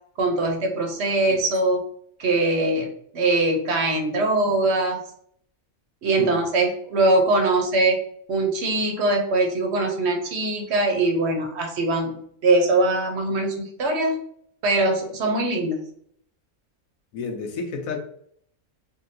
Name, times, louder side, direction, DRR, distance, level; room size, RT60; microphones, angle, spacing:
voice 1, 0.2-1.8 2.2-2.9 3.1-5.0 6.0-8.0 8.3-14.2 14.6-15.8, right 2 dB, 60° right, 2 dB, 0.8 m, -22 dB
voice 2, 17.1-18.0, left 4 dB, 75° left, 4 dB, 1.0 m, -31 dB
3.7 x 2.3 x 2.5 m, 0.64 s
omnidirectional pair, 1.5 m